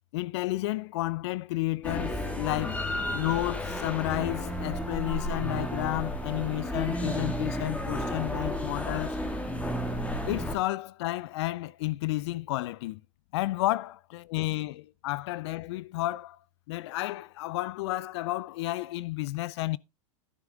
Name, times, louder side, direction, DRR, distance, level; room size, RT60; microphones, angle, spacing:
voice 1, 0.1-9.2 10.3-13.0 13.3-16.4 16.7-19.8, left 18 dB, 55° left, 0.4 m, -31 dB
sound 1, 1.8-10.6, equal, 10° left, 1.8 m, -32 dB
11.0 x 9.0 x 3.5 m
hypercardioid pair, 110°, 17 cm